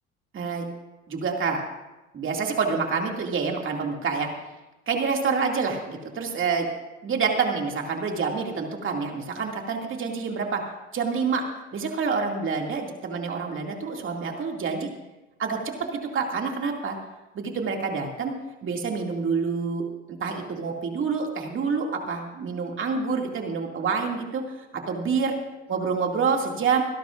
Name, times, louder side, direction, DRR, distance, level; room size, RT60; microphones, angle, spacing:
voice 1, 0.3-0.7 1.1-1.6 2.1-4.3 4.9-6.7 7.0-10.6 10.9-11.4 11.7-14.9 15.4-17.0 17.3-18.3 18.6-19.8 20.1-25.3 25.7-26.8, right 5 dB, 45° right, 1 dB, 2.5 m, -27 dB
24.0 x 12.0 x 2.6 m, 1.1 s
supercardioid pair, 90°, 29 cm